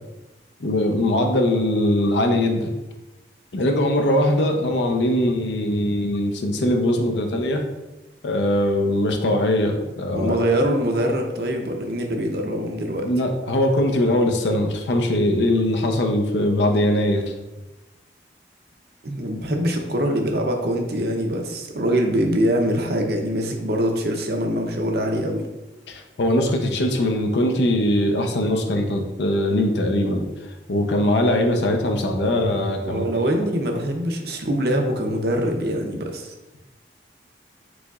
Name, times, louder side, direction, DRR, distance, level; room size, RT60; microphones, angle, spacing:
voice 1, 0.6-2.7 3.5-7.6 8.2-10.4 13.0-17.2 25.9-30.3 30.7-33.1, left 1 dB, 85° left, 3 dB, 0.6 m, -21 dB
voice 2, 10.1-13.1 19.0-25.5 32.8-36.3, equal, 65° right, 3 dB, 0.7 m, -23 dB
4.9 x 3.9 x 2.4 m, 1.1 s
head